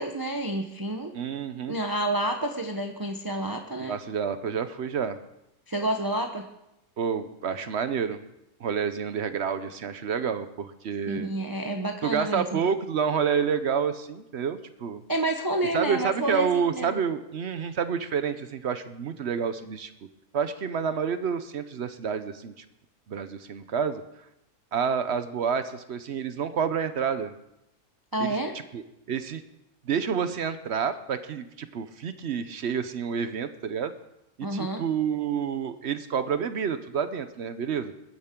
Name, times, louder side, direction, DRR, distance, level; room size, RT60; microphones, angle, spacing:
voice 1, 0.0-1.1 1.7-4.0 5.7-6.4 11.1-12.7 15.1-17.0 28.1-28.5 34.4-34.8, right 1 dB, 20° right, 3 dB, 0.6 m, -29 dB
voice 2, 1.1-1.8 3.8-5.2 7.0-8.2 8.6-11.3 12.0-15.0 15.7-19.9 20.3-22.6 23.1-24.0 24.7-27.3 28.2-28.4 28.7-29.4 29.8-33.9 34.4-37.9, right 7 dB, 55° right, 11 dB, 0.9 m, -29 dB
22.0 x 10.0 x 3.7 m, 0.85 s
omnidirectional pair, 1.6 m